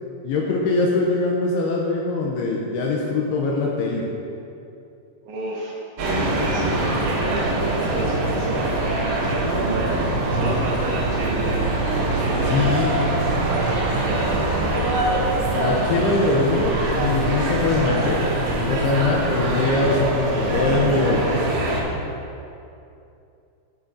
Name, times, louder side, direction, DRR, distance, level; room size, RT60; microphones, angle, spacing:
voice 1, 0.2-4.0 12.5-12.9 15.5-18.2 18.5-21.2, left 3 dB, 80° left, -2 dB, 2.5 m, -22 dB
voice 2, 5.2-10.1 10.3-13.1 14.0-15.0, right 2 dB, 80° right, -4 dB, 3.2 m, -32 dB
sound 1, 6.0-21.8, right 2 dB, 60° right, 2.5 m, -23 dB
11.0 x 8.8 x 2.7 m, 2.7 s
omnidirectional pair, 5.2 m